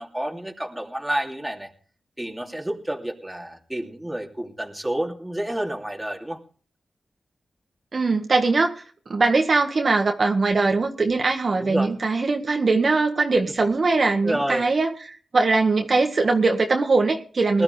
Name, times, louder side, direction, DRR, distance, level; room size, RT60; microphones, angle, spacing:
voice 1, 0.0-1.7 2.2-6.4 11.6-11.9 14.2-14.7 17.5-17.6, right 1 dB, 10° right, 1 dB, 2.8 m, -29 dB
voice 2, 7.9-8.7 9.1-17.6, right 3 dB, 50° right, 3 dB, 1.7 m, -21 dB
20.0 x 12.0 x 3.4 m, 0.43 s
wide cardioid pair, 80°, 0 cm